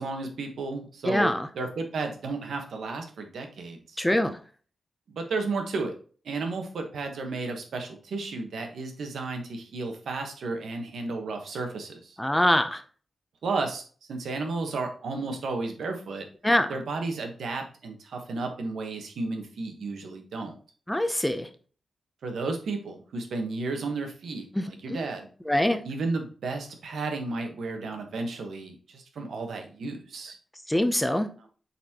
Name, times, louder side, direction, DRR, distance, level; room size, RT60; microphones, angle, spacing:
voice 1, 0.0-4.0 5.1-5.9 6.2-12.2 13.4-13.8 14.1-16.3 16.7-20.5 22.2-25.3 25.8-30.3, right 3 dB, 85° right, 4 dB, 1.3 m, -33 dB
voice 2, 1.1-1.5 4.0-4.4 12.2-12.8 16.4-16.7 20.9-21.5 24.6-25.0 25.5-25.8 30.7-31.3, left 1 dB, 10° left, 9 dB, 0.6 m, -24 dB
8.0 x 4.2 x 2.9 m, 0.41 s
wide cardioid pair, 110°, 0 cm